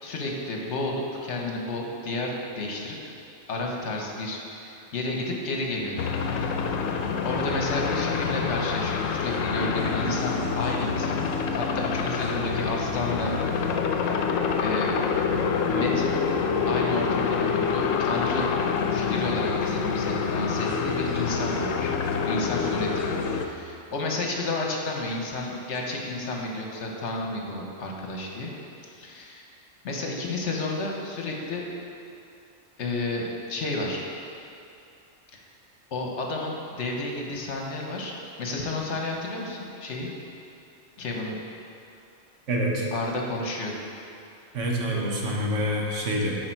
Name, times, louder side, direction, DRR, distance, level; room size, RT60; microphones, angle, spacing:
voice 1, 0.0-2.9 3.5-6.1 6.4-6.6 7.2-13.3 13.7-13.9 14.6-14.9 15.6-16.2 16.7-18.5 18.9-21.9 22.2-28.5 28.8-29.4 29.8-31.6 32.8-34.0 35.3-35.4 35.9-40.1 41.0-41.4 42.8-43.8, left 2 dB, 65° left, 0 dB, 1.2 m, -31 dB
sound 1, 6.0-23.5, left 5 dB, 90° left, 1.0 m, -26 dB
voice 2, 42.5-42.9 44.5-46.4, equal, 75° right, -2 dB, 1.5 m, -26 dB
10.5 x 4.9 x 4.5 m, 2.7 s
omnidirectional pair, 1.3 m